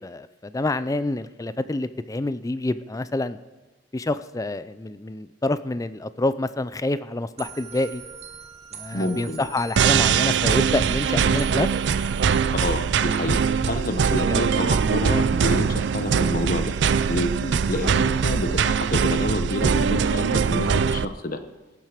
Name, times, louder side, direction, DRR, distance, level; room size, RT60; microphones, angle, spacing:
voice 1, 0.0-3.4 3.9-8.0 8.7-11.7 14.3-14.5 17.4-17.6, left 2 dB, 20° left, 14 dB, 0.4 m, -27 dB
sound 1, 7.4-12.7, right 6 dB, 35° right, 1.1 m, -41 dB
voice 2, 8.9-9.5 12.5-16.7 17.1-17.3 17.7-21.4, left 1 dB, 50° left, 9 dB, 1.0 m, -28 dB
sound 2, 9.8-21.0, right 6 dB, 70° right, 0.4 m, -22 dB
18.0 x 7.5 x 5.0 m, 1.1 s
head